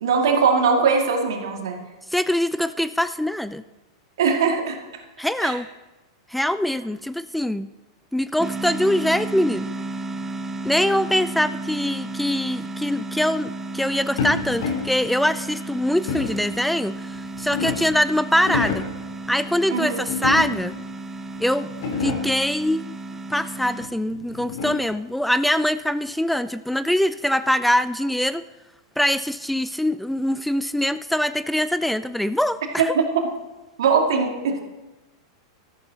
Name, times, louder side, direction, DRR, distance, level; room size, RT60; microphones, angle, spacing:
voice 1, 0.0-1.8 4.2-4.8 5.4-5.5 19.7-20.0 32.8-33.0 33.8-34.6, right 5 dB, 70° right, 3 dB, 2.2 m, -20 dB
voice 2, 2.1-3.6 5.2-5.7 6.3-7.7 8.1-9.7 10.6-18.9 19.3-20.8 21.4-21.7 22.0-22.9 23.3-28.4 29.0-32.9, left 1 dB, ahead, 14 dB, 0.4 m, -23 dB
sound 1, 8.4-23.9, right 2 dB, 15° right, 0.9 m, -33 dB
sound 2, 14.2-15.0 16.1-16.5 17.1-18.0 18.4-19.0 20.1-20.8 21.3-21.4 21.7-22.4 23.8-25.0, left 5 dB, 65° left, 3.5 m, -28 dB
13.5 x 11.5 x 4.0 m, 1.1 s
hypercardioid pair, 100°, 2 cm